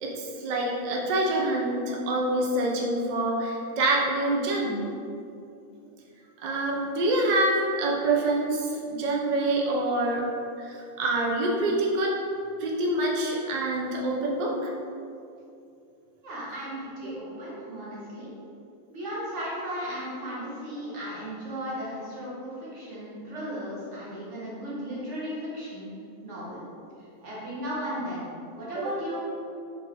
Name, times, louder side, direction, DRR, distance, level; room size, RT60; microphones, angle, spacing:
voice 1, 0.0-4.9 6.4-10.3 10.6-12.2 12.6-14.7 17.0-17.2 28.8-28.9, right 2 dB, 85° right, -2 dB, 0.4 m, -26 dB
voice 2, 16.2-18.3 18.9-25.9 26.2-26.6 27.2-28.3 28.5-29.2, equal, 55° right, -8 dB, 1.4 m, -35 dB
4.4 x 3.2 x 2.7 m, 2.5 s
omnidirectional pair, 1.5 m